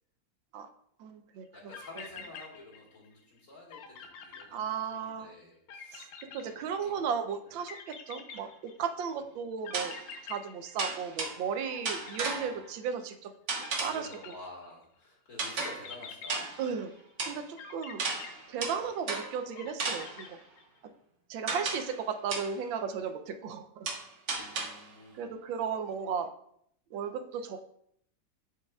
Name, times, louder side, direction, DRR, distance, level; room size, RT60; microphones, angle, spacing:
voice 1, 1.0-1.5 4.5-5.3 5.9-9.9 10.2-13.3 13.8-14.1 16.6-16.9 17.2-18.0 18.5-20.4 21.3-23.9 25.2-26.3 26.9-27.6, right 6 dB, 85° right, 7 dB, 1.4 m, -35 dB
sound 1, 1.5-1.6 1.7-3.1 3.4-3.5 3.7-5.1 5.7-7.1 7.7-9.0 9.6-11.3 11.6-13.0 13.6-14.8 15.6-17.0 17.6-19.1 19.6-20.8, left 6 dB, 75° left, 1.4 m, -47 dB
voice 2, 1.5-6.1 6.4-7.1 7.4-7.6 11.9-12.5 13.8-16.5 18.8-18.9 24.3-25.3, left 2 dB, 45° left, -3 dB, 1.9 m, -50 dB
sound 2, 8.3-8.4 9.7-10.1 10.8-11.5 11.8-12.7 13.5-14.1 15.4-15.9 16.3-16.8 17.2-17.4 18.0-19.4 19.8-20.3 21.5-22.0 22.3-22.6 23.9-24.9, right 3 dB, 50° right, 1.0 m, -35 dB
10.5 x 4.7 x 2.3 m, 0.69 s
omnidirectional pair, 2.1 m